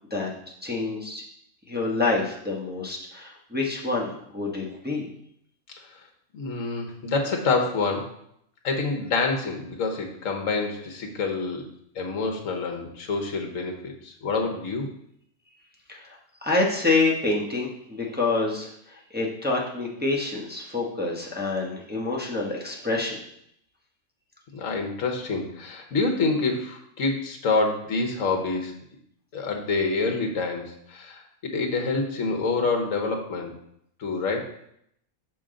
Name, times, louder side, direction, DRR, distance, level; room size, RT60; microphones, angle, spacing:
voice 1, 0.6-1.2 1.7-5.0 15.9-23.2, left 3 dB, 10° right, -4 dB, 1.0 m, -27 dB
voice 2, 6.3-8.1 8.6-11.6 11.9-14.9 24.5-28.7 29.3-33.5 34.0-34.5, left 3 dB, 65° left, 2 dB, 1.5 m, -27 dB
6.4 x 5.7 x 3.8 m, 0.71 s
omnidirectional pair, 1.5 m